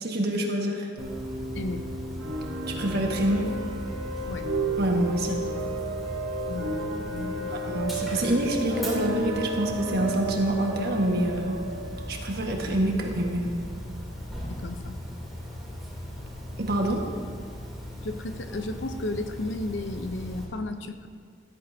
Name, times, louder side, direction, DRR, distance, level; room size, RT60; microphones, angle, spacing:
voice 1, 0.0-0.9 2.7-3.5 4.8-5.4 7.5-11.6 12.1-13.5 16.6-17.0, right 1 dB, 55° right, 1 dB, 1.5 m, -26 dB
Dog, 1.0-20.4, equal, ahead, 3.0 m, -38 dB
Bass guitar, 1.0-5.0, equal, 15° right, 3.1 m, -41 dB
sound 1, 2.2-13.8, right 2 dB, 75° right, 1.0 m, -33 dB
voice 2, 6.5-7.6 14.5-15.0 18.0-21.1, left 2 dB, 65° left, 8 dB, 0.7 m, -34 dB
14.0 x 14.0 x 2.8 m, 2.1 s
head